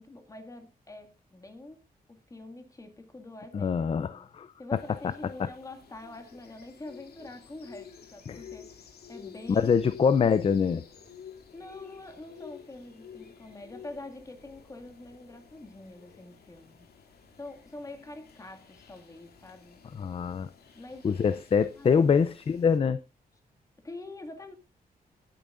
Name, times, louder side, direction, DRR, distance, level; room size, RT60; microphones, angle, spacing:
voice 1, 0.0-1.8 2.1-4.3 4.6-9.7 11.5-16.9 17.4-19.8 20.7-21.1 21.8-22.2 23.8-24.5, left 2 dB, 20° left, 2.0 m, -45 dB
voice 2, 3.5-4.5 5.4-5.5 8.3-8.4 9.5-10.8 20.0-20.5 21.0-23.0, left 6 dB, 35° left, 0.5 m, -24 dB
sound 1, 4.7-22.8, left 7 dB, 90° left, 2.4 m, -51 dB
18.0 x 8.9 x 2.5 m
wide cardioid pair, 140°, 16 cm